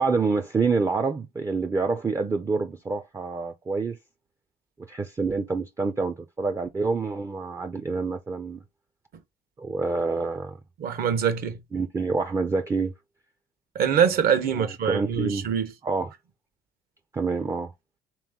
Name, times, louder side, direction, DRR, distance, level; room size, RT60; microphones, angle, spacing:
voice 1, 0.0-4.0 4.9-8.6 9.6-10.6 11.7-12.9 14.5-15.5 15.8-16.1 17.1-17.7, right 4 dB, 15° right, 0.4 m, -27 dB
voice 2, 10.8-11.6 13.7-15.7, right 7 dB, 65° right, 1.0 m, -24 dB
3.4 x 3.0 x 3.6 m
cardioid pair, 110°, 17 cm